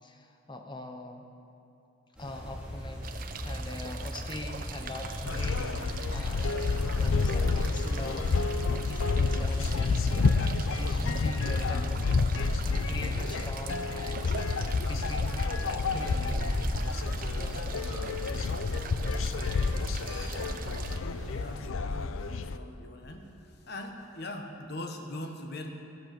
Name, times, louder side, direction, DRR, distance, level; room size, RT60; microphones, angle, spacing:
voice 1, 0.0-1.2 2.2-3.1 3.4-12.3 12.6-16.5 16.8-18.2, left 1 dB, 20° left, 5 dB, 0.7 m, -43 dB
sound 1, 2.1-21.5, equal, 5° right, 2.7 m, -38 dB
sound 2, 3.0-21.0, right 6 dB, 40° right, 0.6 m, -43 dB
sound 3, 5.2-22.6, left 4 dB, 75° left, 0.5 m, -29 dB
voice 2, 21.2-22.2 22.5-23.3 23.7-25.7, left 1 dB, 50° left, 4 dB, 1.2 m, -41 dB
13.0 x 12.0 x 6.0 m, 3.0 s
head